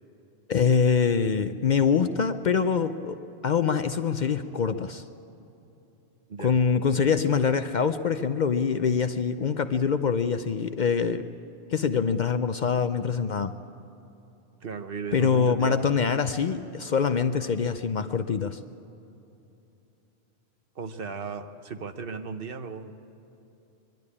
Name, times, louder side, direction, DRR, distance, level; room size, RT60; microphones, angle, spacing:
voice 1, 0.5-3.2 3.4-5.0 6.4-11.3 11.7-13.6 15.1-18.6, left 6 dB, 50° left, 9 dB, 0.6 m, -24 dB
voice 2, 14.6-16.1 20.7-22.9, right 5 dB, 60° right, 8 dB, 1.1 m, -36 dB
23.0 x 12.0 x 9.7 m, 2.9 s
omnidirectional pair, 1.1 m